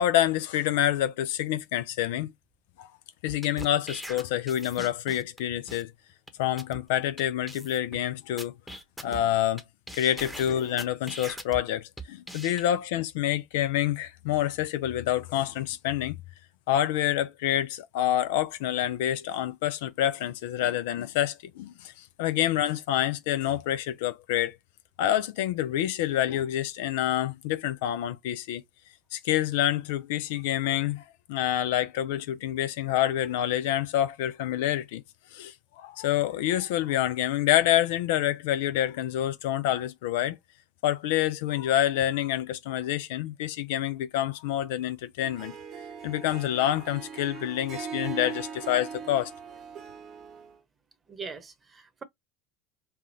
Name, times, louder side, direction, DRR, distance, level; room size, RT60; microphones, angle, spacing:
voice 1, 0.0-2.3 2.8-2.9 3.2-5.9 6.4-8.5 9.0-9.6 9.9-16.2 16.7-24.6 25.0-28.6 29.1-35.0 35.3-40.4 40.8-45.5 46.0-49.3, left 12 dB, 70° left, 0.4 m, -27 dB
sound 1, 3.3-5.4 5.7-5.8 6.3-6.4 6.6-6.8 7.2-7.3 7.5-8.0 8.4-9.6 9.9-11.6 12.0-12.6, right 1 dB, ahead, 0.9 m, -41 dB
Harp, 45.2-50.5, right 6 dB, 50° right, 1.0 m, -40 dB
voice 2, 51.1-52.0, right 5 dB, 30° right, 0.9 m, -42 dB
3.3 x 2.3 x 2.7 m
hypercardioid pair, 75°, 0 cm